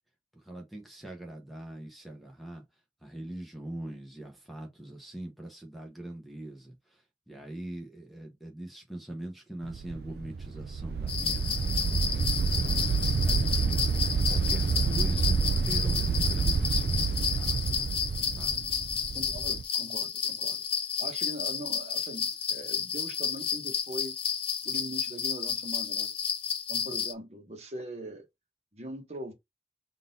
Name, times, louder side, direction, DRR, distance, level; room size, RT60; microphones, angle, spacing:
voice 1, 0.4-2.6 3.0-6.7 7.3-12.0 12.5-13.8 14.3-17.8 18.3-18.7, right 1 dB, ahead, 0.8 m, -42 dB
sound 1, 9.6-19.6, right 5 dB, 60° right, 0.3 m, -28 dB
sound 2, 11.1-27.1, left 7 dB, 30° left, 0.5 m, -32 dB
voice 2, 19.1-20.6 21.0-24.1 24.6-26.1 26.7-28.2 28.7-29.3, right 1 dB, 40° right, 1.1 m, -41 dB
3.8 x 2.6 x 4.1 m
head